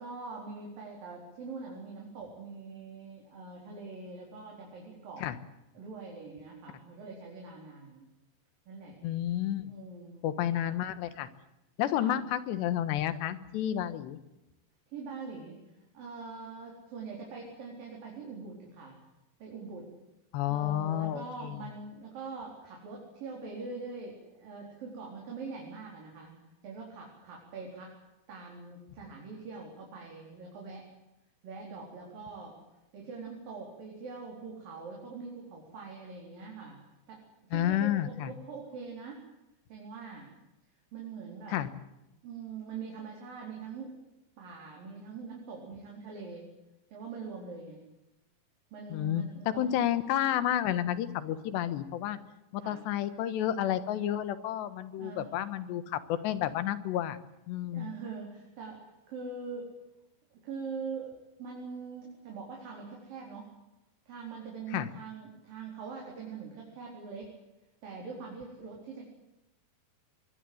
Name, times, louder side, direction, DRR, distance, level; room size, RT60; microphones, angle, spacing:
voice 1, 0.0-5.3 5.7-8.1 8.7-9.0 9.7-10.6 11.9-12.2 14.9-15.6 15.9-19.0 19.4-19.9 20.4-26.4 26.6-27.9 28.3-30.9 31.4-32.6 32.9-36.8 37.1-37.2 37.5-39.2 39.7-40.3 40.9-41.6 42.2-43.9 44.4-46.5 46.9-47.8 48.7-49.7 52.6-52.8 54.9-55.5 57.7-58.8 59.1-59.7 60.3-61.1 61.4-63.5 64.1-67.3 67.8-69.0, right 4 dB, 55° right, -2 dB, 5.9 m, -43 dB
voice 2, 9.0-9.7 10.2-11.3 11.8-14.2 20.3-21.7 37.5-38.3 41.5-41.7 48.9-52.2 52.5-57.2 57.5-57.9 64.7-64.9, left 11 dB, 80° left, 13 dB, 3.5 m, -31 dB
24.0 x 22.5 x 7.9 m, 0.95 s
omnidirectional pair, 4.9 m